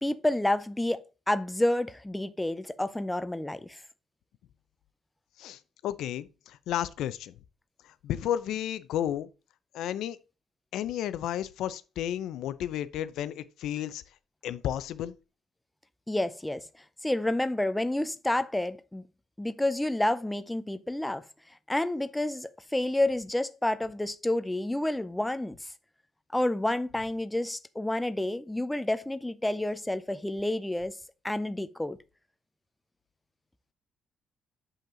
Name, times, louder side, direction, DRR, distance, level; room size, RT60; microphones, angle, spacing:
voice 1, 0.0-3.8 16.1-16.7 17.0-19.0 19.4-21.2 21.7-25.6 26.3-31.0 31.2-32.0, left 1 dB, 5° left, 0.4 m, -29 dB
voice 2, 5.4-7.3 8.0-9.3 9.7-10.2 10.7-14.0 14.4-15.1, left 11 dB, 75° left, 0.5 m, -32 dB
7.2 x 5.4 x 3.8 m
cardioid pair, 155°, 0 cm